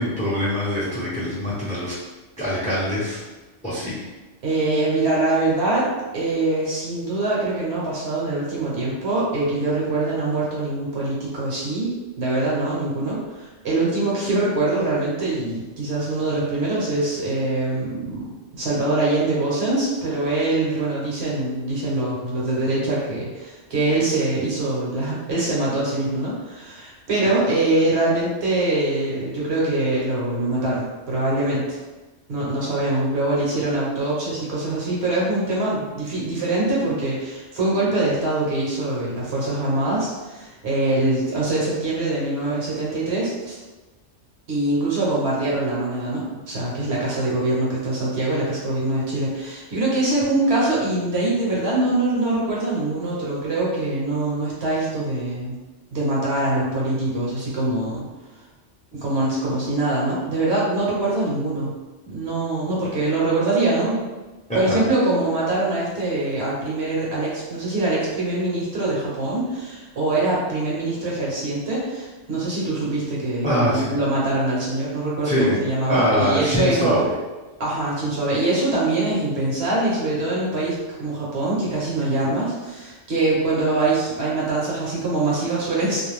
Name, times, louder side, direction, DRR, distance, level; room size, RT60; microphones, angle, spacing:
voice 1, 0.0-1.9 2.4-3.2 3.6-4.0 27.2-27.3 64.5-64.8 73.4-74.0 75.2-75.6 75.9-77.0, equal, 5° left, -8 dB, 0.6 m, -23 dB
voice 2, 4.4-5.9 6.1-18.2 18.5-31.8 32.3-43.5 44.5-55.5 55.9-58.0 58.9-61.7 62.0-64.0 64.5-77.1 77.6-86.0, right 2 dB, 60° right, -6 dB, 1.0 m, -23 dB
2.5 x 2.2 x 3.1 m, 1.2 s
omnidirectional pair, 1.2 m